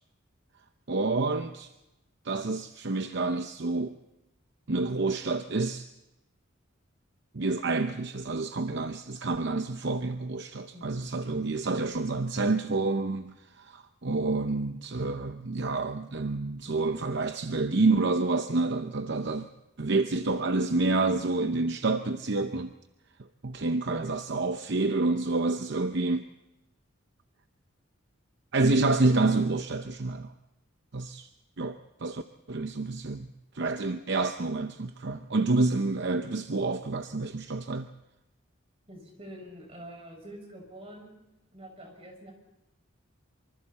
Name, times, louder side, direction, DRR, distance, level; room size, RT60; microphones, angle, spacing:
voice 1, 0.9-1.7 2.2-4.0 4.7-5.9 7.3-19.5 19.8-22.7 23.4-26.3 28.5-30.3 30.9-31.3 31.6-32.2 32.5-33.3 33.5-37.9, right 3 dB, 55° right, 0.8 m, -28 dB
voice 2, 38.9-41.2 41.5-42.3, right 1 dB, 30° right, 6.3 m, -46 dB
25.5 x 25.0 x 4.3 m
head